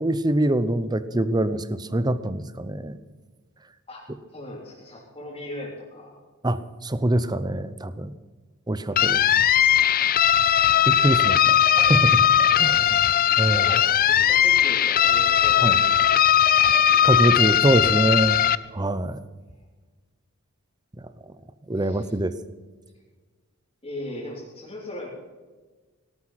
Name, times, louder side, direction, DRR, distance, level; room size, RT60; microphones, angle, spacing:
voice 1, 0.0-3.0 6.4-8.1 8.7-9.2 10.9-12.2 12.6-13.1 13.4-13.6 15.6-15.7 17.0-18.4 18.7-19.2 21.7-22.3, right 1 dB, 20° right, 14 dB, 0.8 m, -24 dB
voice 2, 4.3-6.2 8.9-9.1 13.3-16.0 16.5-16.7 21.7-22.1 23.8-25.1, left 1 dB, 25° left, -6 dB, 3.7 m, -38 dB
sound 1, 9.0-18.6, left 10 dB, 40° left, 0.5 m, -19 dB
18.0 x 12.5 x 5.9 m, 1.3 s
head